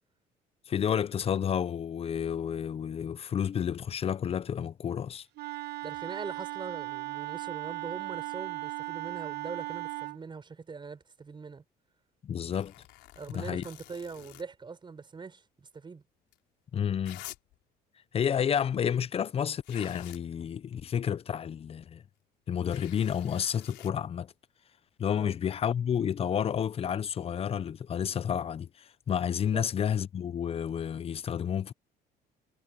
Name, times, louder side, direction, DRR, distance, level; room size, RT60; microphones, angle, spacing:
voice 1, 0.7-5.3 12.2-12.7 13.3-13.6 16.7-17.2 18.1-22.0 22.5-24.3 25.0-31.7, left 8 dB, 35° left, 0.5 m, -30 dB
Wind instrument woodwind instrument, 5.4-10.2, right 22 dB, 75° right, 1.0 m, -37 dB
voice 2, 5.8-11.6 13.2-16.0 25.2-25.3 29.5-29.6, right 5 dB, 30° right, 5.6 m, -42 dB
sound 1, 12.5-14.4 16.3-16.4 17.0-17.6 19.3-19.4 19.6-20.2 22.7-23.9 26.2-26.3, left 17 dB, 90° left, 4.3 m, -49 dB
cardioid pair, 110°, 17 cm